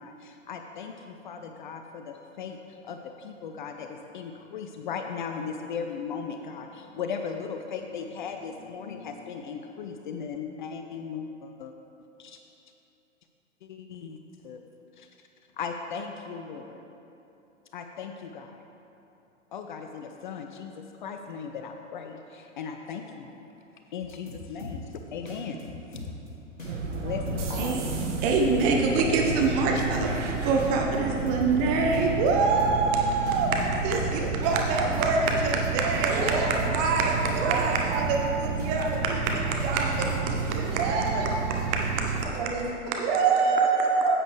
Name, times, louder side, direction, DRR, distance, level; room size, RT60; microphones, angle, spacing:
voice 1, 0.0-11.7 12.2-12.4 13.6-14.2 14.4-14.6 15.0-15.1 15.6-16.8 17.7-18.7 19.5-23.4 23.9-25.6 25.9-26.0 27.0-28.2 29.7-29.9, left 6 dB, 40° left, 5 dB, 0.5 m, -37 dB
sound 1, 24.0-24.9 25.3-26.3 26.6-26.9 27.3-27.6 27.9-30.3 30.6-31.6 31.9-32.3 32.6-32.9 33.3-35.6 35.9-36.9 37.3-37.6 37.9-38.3 38.6-40.4, left 2 dB, 80° left, 2.0 m, -39 dB
sound 2, 26.6-42.2, right 5 dB, 65° right, 1.1 m, -31 dB
voice 2, 28.2-36.3 36.7-40.7 41.1-41.2 41.7-41.9 43.0-44.2, right 4 dB, 25° right, 1 dB, 0.6 m, -25 dB
voice 3, 36.1-36.5 37.0-37.7 38.0-39.0 40.6-41.7 42.2-43.2, right 3 dB, 50° right, -3 dB, 2.0 m, -32 dB
9.8 x 8.3 x 3.3 m, 2.9 s
figure-of-eight pair, 110°, 38 cm